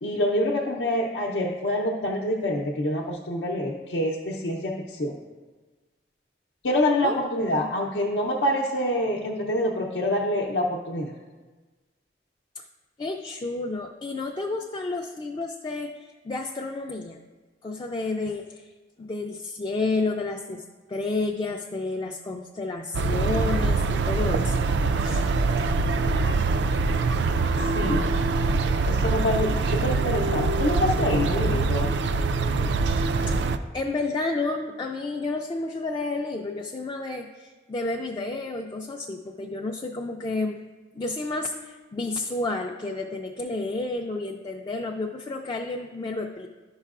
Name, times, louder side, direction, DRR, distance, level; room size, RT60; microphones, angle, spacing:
voice 1, 0.0-5.2 6.6-11.1 27.7-28.1 28.9-31.9, left 1 dB, 80° left, -2 dB, 0.6 m, -26 dB
voice 2, 13.0-17.2 17.6-18.7 19.0-20.6 20.9-24.7 25.0-25.3 33.3-40.6 40.9-46.5, left 3 dB, 25° left, 2 dB, 0.3 m, -31 dB
sound 1, 22.9-33.6, right 3 dB, 80° right, 0.4 m, -24 dB
11.5 x 5.5 x 2.4 m, 1.3 s
head